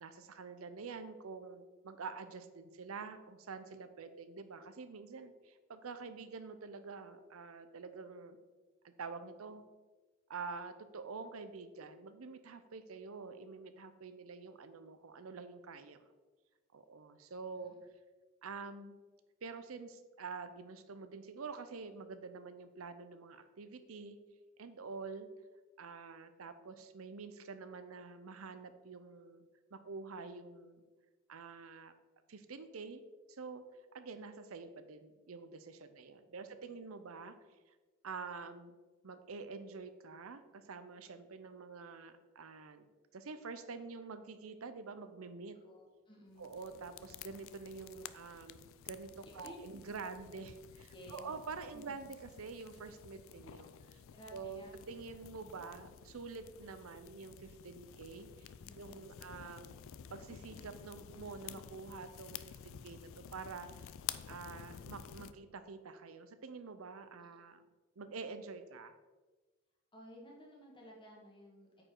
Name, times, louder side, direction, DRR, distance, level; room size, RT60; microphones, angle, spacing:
voice 1, 0.0-8.4 8.8-9.6 10.3-16.1 16.7-17.7 18.4-19.0 19.4-24.2 24.6-25.3 25.8-29.5 29.7-30.8 31.3-31.9 32.3-33.0 33.3-33.6 33.9-37.3 38.0-38.8 39.0-42.9 43.1-45.5 46.4-54.0 54.3-59.8 60.1-63.9 64.3-67.6 68.0-69.0, right 4 dB, 85° right, 11 dB, 0.6 m, -47 dB
voice 2, 45.5-46.6 49.2-50.0 50.9-51.3 51.7-52.0 54.1-54.7 58.6-59.3 67.3-67.4 69.9-71.9, equal, 25° left, -2 dB, 1.8 m, -55 dB
sound 1, 46.4-65.3, left 9 dB, 70° left, 0.4 m, -51 dB
8.7 x 5.0 x 3.8 m, 1.3 s
head